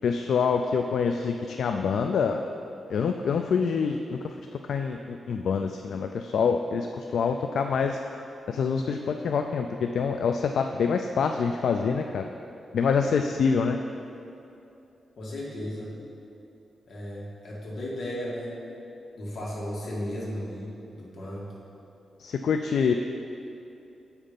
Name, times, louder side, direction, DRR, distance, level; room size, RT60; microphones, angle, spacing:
voice 1, 0.0-2.4 2.9-4.4 4.7-8.0 8.5-12.3 12.7-13.8 22.2-22.9, left 6 dB, 70° left, 5 dB, 0.3 m, -26 dB
voice 2, 15.2-15.9 16.9-18.5 19.2-21.5, equal, 55° left, -5 dB, 2.0 m, -35 dB
8.1 x 5.7 x 5.1 m, 2.8 s
wide cardioid pair, 130°, 0 cm